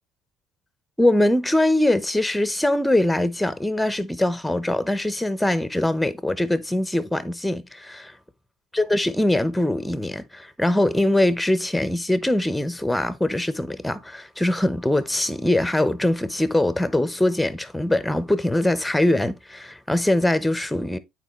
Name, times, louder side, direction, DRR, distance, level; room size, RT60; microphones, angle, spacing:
voice 1, 1.0-8.1 8.7-21.0, left 1 dB, 5° left, 0.8 m, -22 dB
9.1 x 4.5 x 3.1 m
supercardioid pair, 90°, 0 cm